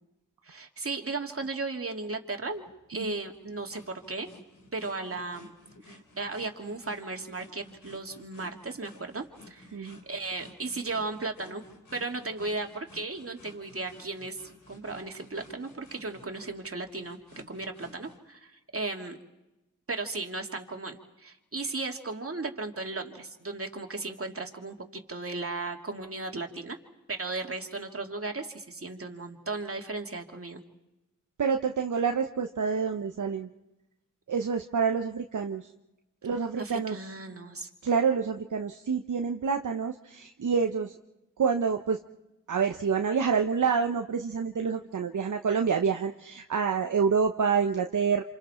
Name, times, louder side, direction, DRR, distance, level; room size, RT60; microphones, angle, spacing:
voice 1, 0.4-2.6 2.9-4.3 4.7-5.6 5.8-11.6 11.9-17.2 17.5-19.2 19.9-26.8 27.1-30.6 36.6-37.7, right 3 dB, 45° right, 3 dB, 2.6 m, -36 dB
sound 1, 2.5-18.2, left 2 dB, 90° left, 3.5 m, -54 dB
voice 2, 31.4-33.5 34.3-35.7 36.2-37.0 37.8-40.9 41.4-42.0 42.5-48.2, right 6 dB, 70° right, 5 dB, 1.0 m, -27 dB
28.0 x 27.5 x 4.5 m, 0.96 s
cardioid pair, 50°, 32 cm